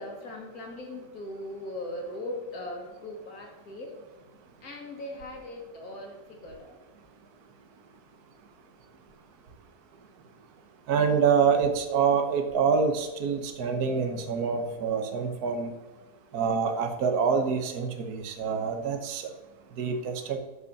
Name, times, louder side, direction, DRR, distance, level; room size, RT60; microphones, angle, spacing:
voice 1, 0.0-3.9 4.6-6.8, left 1 dB, 60° left, 1 dB, 2.4 m, -39 dB
voice 2, 10.9-15.7 16.3-19.3 19.8-20.4, right 6 dB, 65° right, 5 dB, 1.6 m, -26 dB
13.0 x 5.5 x 5.4 m, 1.2 s
omnidirectional pair, 1.8 m